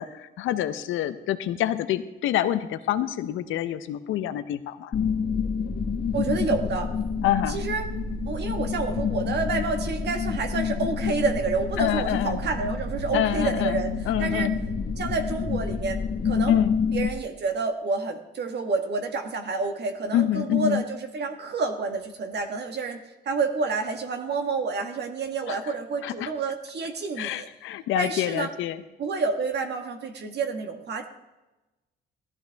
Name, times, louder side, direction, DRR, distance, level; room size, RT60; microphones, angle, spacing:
voice 1, 0.0-4.9 7.2-7.6 11.8-12.4 13.1-13.8 14.1-14.5 16.4-16.8 20.1-20.8 25.5-25.7 26.0-26.3 27.2-28.8, left 12 dB, 90° left, 11 dB, 0.8 m, -27 dB
sound 1, 4.9-17.1, left 5 dB, 50° left, 1.2 m, -28 dB
voice 2, 6.1-6.9 7.5-7.9 8.3-13.9 14.2-14.5 15.0-16.5 16.9-23.0 23.2-27.5 27.9-28.5 29.0-31.1, right 4 dB, 60° right, 5 dB, 1.5 m, -29 dB
16.5 x 13.5 x 3.5 m, 1.1 s
cardioid pair, 90°, 20 cm